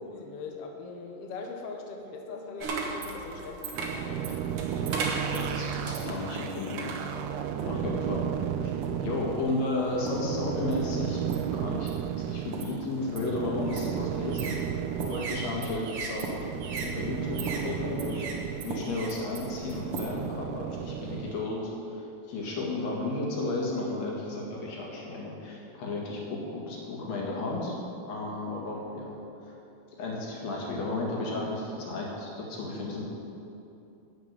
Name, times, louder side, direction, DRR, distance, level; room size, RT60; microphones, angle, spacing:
voice 1, 0.0-4.4 7.6-7.8, left 4 dB, 80° left, 2 dB, 1.3 m, -41 dB
sound 1, 2.6-7.9 8.5-9.1 9.8-10.3 10.7-20.4, right 3 dB, 55° right, 1.6 m, -37 dB
sound 2, 3.7-21.4, right 9 dB, 80° right, 2.0 m, -34 dB
voice 2, 5.3-6.9 7.7-8.2 8.6-8.7 9.0-11.2 11.5-14.6 15.0-16.2 16.7-18.3 18.6-21.6 21.9-27.7 28.1-29.1 29.5-29.6 30.0-33.0, left 2 dB, 55° left, -3 dB, 2.9 m, -33 dB
11.0 x 5.9 x 8.5 m, 2.8 s
omnidirectional pair, 4.0 m